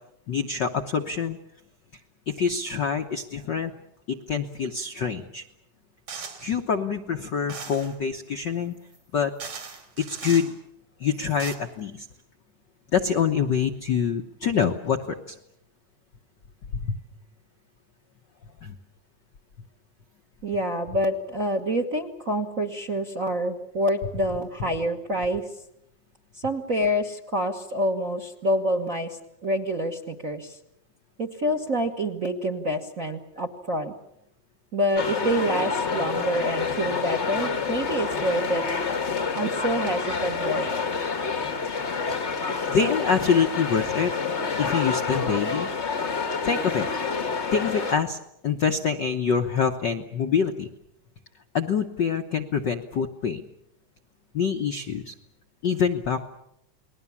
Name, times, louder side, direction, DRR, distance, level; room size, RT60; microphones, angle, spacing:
voice 1, 0.3-1.4 2.3-3.7 4.1-5.4 6.4-8.8 9.1-9.3 10.0-10.5 11.0-12.1 12.9-15.4 16.8-17.0 18.6-18.8 42.7-44.1 44.6-45.7 46.4-46.9 47.5-48.2 48.4-50.7 51.5-53.4 54.3-55.1 55.6-56.2, left 6 dB, 60° left, 5 dB, 1.1 m, -25 dB
sound 1, 6.1-6.6 7.5-8.0 8.9-9.0 9.4-10.5 11.2-11.6, right 5 dB, 65° right, 4.2 m, -38 dB
voice 2, 20.4-25.5 26.3-30.6 31.2-33.9 34.7-38.6 39.4-40.7, equal, 40° right, 6 dB, 1.2 m, -27 dB
sound 2, 35.0-47.9, left 5 dB, 40° left, 1.0 m, -28 dB
29.5 x 20.5 x 7.2 m, 0.79 s
omnidirectional pair, 3.4 m